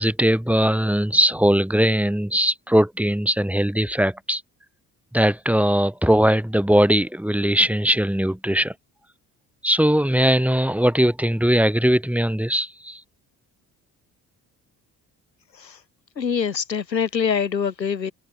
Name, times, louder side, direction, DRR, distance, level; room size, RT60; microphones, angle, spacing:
voice 1, 0.0-4.4 5.1-8.7 9.6-13.0, equal, 5° right, 4.8 m, -20 dB
voice 2, 16.2-18.1, left 6 dB, 85° left, 1.5 m, -24 dB
figure-of-eight pair, 45°, 49 cm